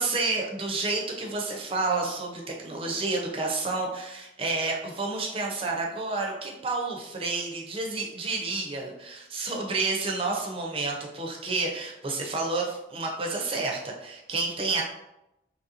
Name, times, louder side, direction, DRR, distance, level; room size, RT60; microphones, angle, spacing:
voice 1, 0.0-14.8, right 3 dB, 30° right, 0 dB, 0.5 m, -30 dB
3.0 x 2.7 x 2.5 m, 0.88 s
head